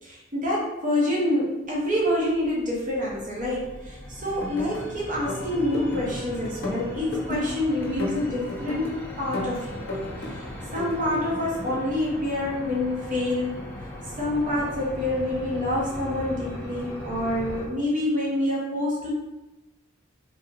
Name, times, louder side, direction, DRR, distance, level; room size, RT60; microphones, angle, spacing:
voice 1, 0.0-9.8 10.2-10.4 10.7-13.6 14.2-19.1, left 1 dB, 40° right, -5 dB, 0.6 m, -27 dB
sound 1, 1.7-17.7, left 1 dB, 10° left, 0.3 m, -39 dB
sound 2, 4.2-4.8 5.1-6.2 6.4-7.6 7.8-8.9 9.3-10.3 10.6-11.7, left 2 dB, 55° left, 0.7 m, -33 dB
2.6 x 2.1 x 3.6 m, 1.1 s
head